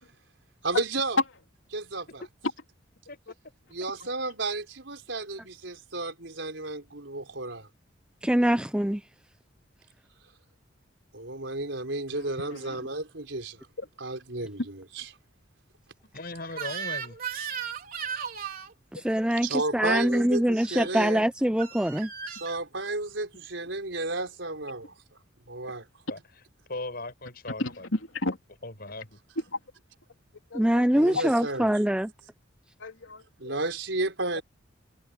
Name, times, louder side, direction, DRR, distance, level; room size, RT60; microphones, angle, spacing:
voice 1, 0.6-1.2 1.7-2.2 3.7-7.7 11.1-13.7 14.0-15.1 19.4-21.2 22.3-24.9 25.5-25.8 30.9-31.7 33.4-34.4, right 2 dB, 70° right, 4.9 m, -32 dB
voice 2, 8.2-9.0 18.9-22.1 30.5-32.1, equal, 5° right, 0.6 m, -24 dB
voice 3, 12.1-12.9 13.8-13.9 27.6-28.4 29.5-29.6 30.5-30.9 31.1-31.4 32.8-33.6, left 3 dB, 85° left, 3.3 m, -34 dB
voice 4, 16.1-17.2 25.7-25.8 26.1-26.2 26.7-27.9 28.6-29.2, left 2 dB, 50° left, 6.4 m, -38 dB
Crying sobbing / Screech, 16.5-18.7 20.6-20.9 21.6-22.6, right 7 dB, 50° right, 4.1 m, -36 dB
head